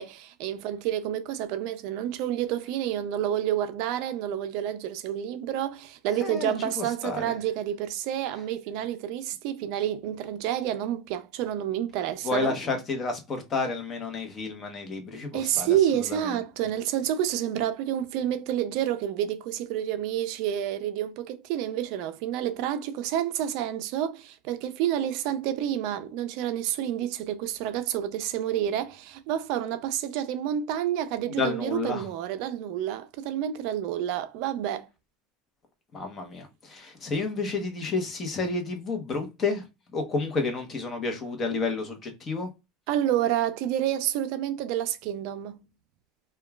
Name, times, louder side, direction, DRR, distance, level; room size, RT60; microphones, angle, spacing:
voice 1, 0.0-12.5 15.3-34.9 42.9-45.6, right 11 dB, 65° right, 0.4 m, -29 dB
voice 2, 6.2-7.4 12.2-16.4 31.3-32.1 35.9-39.6 39.9-42.5, left 3 dB, 30° left, 0.8 m, -31 dB
2.9 x 2.2 x 2.2 m
supercardioid pair, 130°, 0 cm